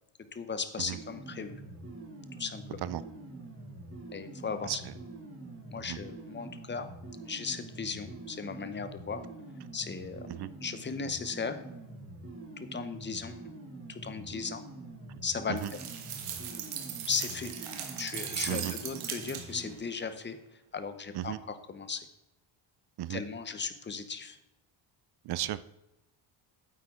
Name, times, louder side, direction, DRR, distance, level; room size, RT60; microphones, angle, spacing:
voice 1, 0.3-1.5 2.4-2.8 4.1-4.9 5.7-6.9 7.2-9.2 9.7-10.3 10.6-11.6 12.6-13.5 13.9-14.6 15.2-15.8 17.1-17.5 18.0-20.4 20.7-22.1 23.1-24.4, left 5 dB, 20° left, 10 dB, 0.8 m, -36 dB
sound 1, 0.9-19.8, right 2 dB, 25° right, 2.6 m, -46 dB
sound 2, 15.6-19.7, right 8 dB, 80° right, 1.7 m, -39 dB
voice 2, 25.3-25.6, right 14 dB, 50° right, 17 dB, 0.5 m, -34 dB
9.3 x 8.1 x 3.7 m, 0.92 s
cardioid pair, 130°, 50 cm